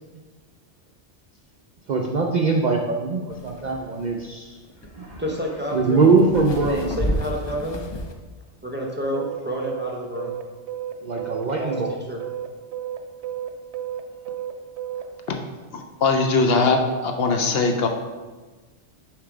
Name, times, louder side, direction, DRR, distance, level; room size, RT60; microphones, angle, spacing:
voice 1, 1.9-4.5 5.0-5.2 5.7-7.0 11.0-11.9, right 4 dB, 55° right, 0 dB, 0.5 m, -22 dB
sound 1, 3.3-8.1, equal, 40° left, 0.3 m, -31 dB
voice 2, 5.2-6.1 6.9-7.8 8.6-10.3 11.6-12.2, equal, 10° right, -1 dB, 0.7 m, -29 dB
sound 2, 9.1-15.3, right 11 dB, 75° right, 0.8 m, -32 dB
voice 3, 15.7-17.9, left 3 dB, 65° left, 4 dB, 0.8 m, -21 dB
6.7 x 3.2 x 4.9 m, 1.3 s
omnidirectional pair, 1.2 m